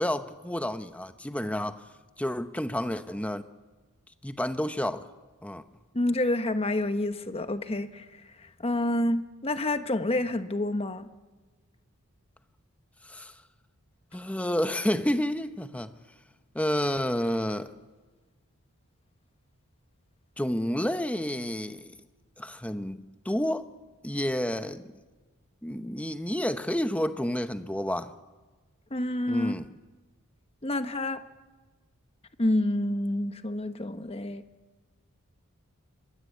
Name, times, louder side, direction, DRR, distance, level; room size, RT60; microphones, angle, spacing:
voice 1, 0.0-1.8 2.2-3.4 4.2-5.1 5.4-5.6 13.0-13.3 14.1-15.9 16.5-17.7 20.4-21.9 22.4-23.6 24.0-24.8 25.6-28.1 29.3-29.7, equal, 5° left, 0.9 m, -30 dB
voice 2, 5.9-8.1 8.6-11.1 28.9-29.5 30.6-31.2 32.4-34.4, left 1 dB, 25° left, 1.1 m, -28 dB
25.5 x 21.5 x 8.4 m
head